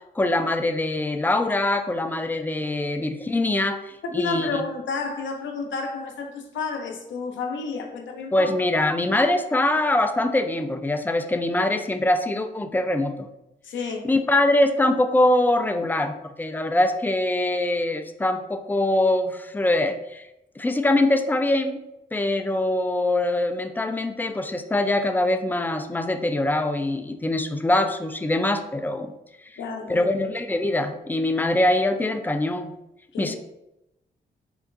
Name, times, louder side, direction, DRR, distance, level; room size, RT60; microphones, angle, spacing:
voice 1, 0.2-4.6 8.3-13.3 14.1-20.2 20.6-21.8 22.1-29.1 29.9-32.7 33.2-33.4, left 1 dB, 10° left, 7 dB, 0.3 m, -23 dB
voice 2, 4.1-8.5 13.6-14.1 29.6-30.1 33.1-33.4, left 4 dB, 75° left, 3 dB, 0.6 m, -30 dB
3.7 x 2.2 x 2.4 m, 0.87 s
supercardioid pair, 50°, 20 cm